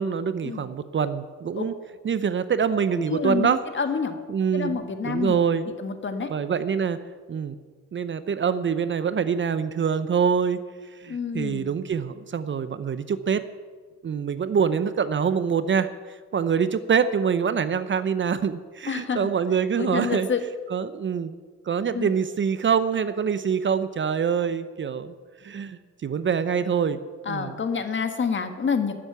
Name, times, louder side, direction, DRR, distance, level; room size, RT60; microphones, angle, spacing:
voice 1, 0.0-1.7 2.0-3.6 4.3-4.8 5.0-5.7 6.3-7.0 7.3-7.5 7.9-10.6 11.0-13.4 14.0-15.9 16.3-20.3 20.7-21.3 21.7-25.1 25.4-27.0 27.3-27.6, right 7 dB, 40° right, 13 dB, 0.7 m, -25 dB
voice 2, 3.1-3.5 3.7-4.2 4.5-5.4 5.7-6.3 11.1-11.7 18.9-19.3 19.8-20.4 21.9-22.1 27.2-28.9, left 5 dB, 40° left, 8 dB, 1.6 m, -28 dB
12.5 x 7.5 x 9.3 m, 1.5 s
cardioid pair, 90°, 30 cm